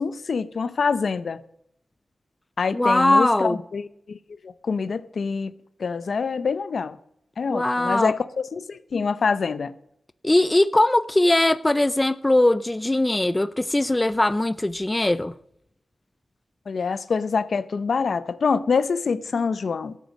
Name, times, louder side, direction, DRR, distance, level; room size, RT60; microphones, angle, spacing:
voice 1, 0.0-1.4 2.6-4.2 4.4-5.5 5.8-7.0 7.4-9.7 16.7-20.0, left 5 dB, 65° left, 0.7 m, -25 dB
voice 2, 2.7-3.6 7.5-8.1 10.2-15.3, left 1 dB, 20° left, 0.4 m, -20 dB
13.0 x 8.3 x 6.1 m
cardioid pair, 75°, 0 cm